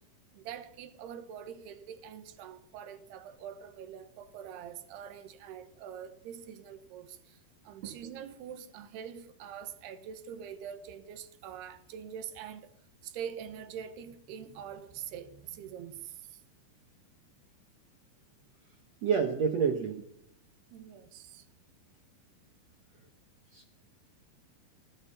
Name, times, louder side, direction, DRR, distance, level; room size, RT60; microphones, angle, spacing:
voice 1, 0.3-12.7 13.0-16.4 20.7-21.5, right 8 dB, 90° right, 3.3 m, -44 dB
voice 2, 19.0-20.0 23.5-23.7, right 6 dB, 65° right, 1.6 m, -28 dB
18.0 x 13.0 x 5.6 m
omnidirectional pair, 4.5 m